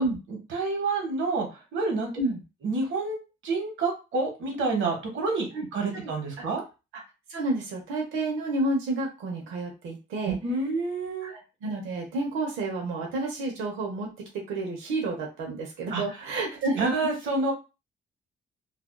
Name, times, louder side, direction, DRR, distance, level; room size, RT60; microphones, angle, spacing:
voice 1, 0.3-1.5 1.7-2.1 2.6-6.6 10.2-11.3 15.9-16.0 16.7-17.5, right 3 dB, 70° right, 2 dB, 1.1 m, -28 dB
voice 2, 7.3-10.4 11.2-14.1 14.5-16.9, right 2 dB, 90° right, -1 dB, 0.9 m, -30 dB
2.5 x 2.4 x 2.2 m, 0.29 s
cardioid pair, 90°, 20 cm